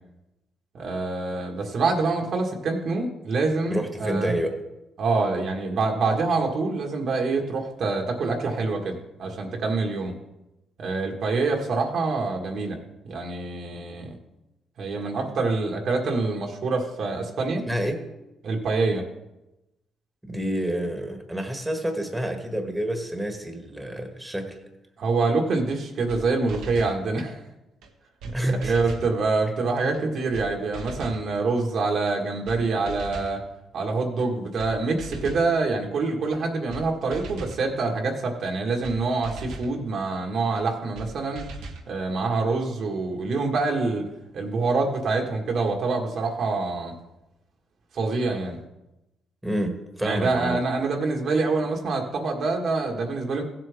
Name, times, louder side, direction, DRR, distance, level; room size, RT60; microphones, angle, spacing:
voice 1, 0.7-4.3 5.0-10.1 10.8-12.8 13.1-14.1 14.8-17.6 18.4-19.0 25.0-27.4 28.5-33.4 33.7-41.5 41.9-44.1 44.3-46.9 47.9-48.6 50.0-53.4, right 3 dB, 65° right, 1 dB, 1.7 m, -26 dB
voice 2, 3.7-4.5 17.7-18.0 20.2-24.6 28.3-28.7 49.4-50.6, right 1 dB, 10° right, 4 dB, 1.5 m, -28 dB
sound 1, 25.7-25.8 26.1-26.2 26.5-27.0 27.8-27.9 28.2-28.3 28.6-29.1 29.9-30.0 30.3-30.5 30.7-31.2 32.1-32.2 32.4-32.6 32.9-33.3 34.2-34.3 34.6-34.7 35.0-35.5 36.3-36.4 36.7-36.8 37.1-37.6 38.4-38.5 38.8-39.0 39.2-39.7 40.6-40.7 40.9-41.1 41.3-41.8, right 3 dB, 90° right, 1.3 m, -38 dB
16.0 x 7.7 x 3.6 m, 0.95 s
cardioid pair, 90°, 0 cm